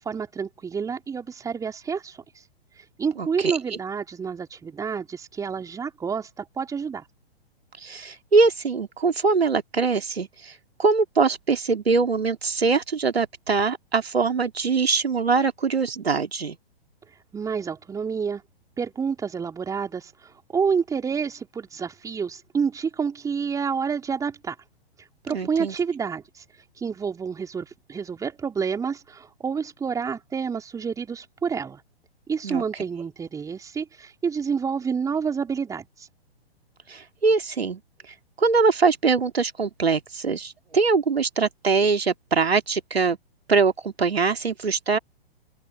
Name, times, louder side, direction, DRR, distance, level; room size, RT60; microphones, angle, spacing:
voice 1, 0.0-2.2 3.0-7.0 17.3-18.4 18.8-24.6 25.2-26.4 26.8-31.8 32.3-36.1, right 6 dB, 10° right, 3.1 m, -28 dB
voice 2, 3.2-3.6 7.8-10.5 10.8-16.6 25.3-25.7 32.4-32.6 36.9-37.8 38.4-43.2 43.5-45.0, right 4 dB, 75° right, 2.4 m, -22 dB
open air
figure-of-eight pair, 115°, 31 cm